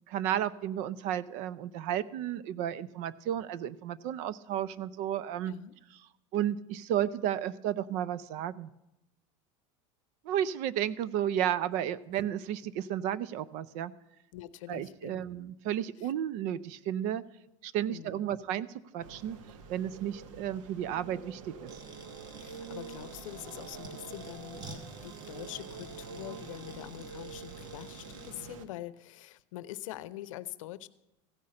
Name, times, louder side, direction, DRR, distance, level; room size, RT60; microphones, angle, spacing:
voice 1, 0.1-5.5 6.3-8.7 10.2-13.9 14.7-17.2 17.6-18.7 18.9-19.4 19.7-21.7, right 10 dB, 50° right, 18 dB, 0.5 m, -33 dB
voice 2, 14.3-15.2 16.0-16.1 17.9-18.3 22.4-30.9, left 15 dB, 90° left, 16 dB, 0.6 m, -44 dB
sound 1, 19.0-28.7, right 5 dB, 90° right, 1.1 m, -46 dB
sound 2, 21.7-28.3, right 2 dB, 25° right, 1.3 m, -50 dB
15.0 x 5.6 x 8.6 m, 0.90 s
supercardioid pair, 150°, 16 cm